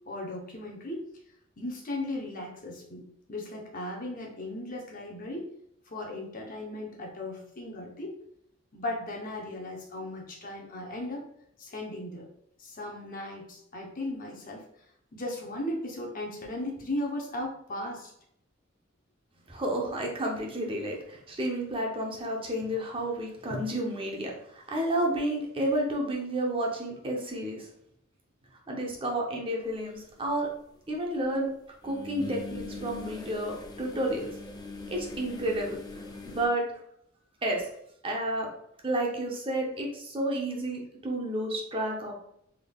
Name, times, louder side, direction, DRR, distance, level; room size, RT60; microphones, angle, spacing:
voice 1, 0.1-1.0 1.6-3.0 3.3-5.5 5.9-8.1 8.7-11.3 11.6-12.3 12.6-14.7 15.1-18.1, left 1 dB, 45° left, 0 dB, 0.8 m, -36 dB
voice 2, 19.5-27.7 28.7-30.5 30.9-31.5 31.8-34.3 34.9-35.8 36.3-36.6 37.4-37.6 38.0-38.5 38.8-42.1, right 1 dB, 25° right, -1 dB, 0.7 m, -31 dB
sound 1, 29.9-30.0 31.8-36.5, left 2 dB, 20° left, 0.4 m, -41 dB
3.7 x 3.4 x 2.3 m, 0.72 s
head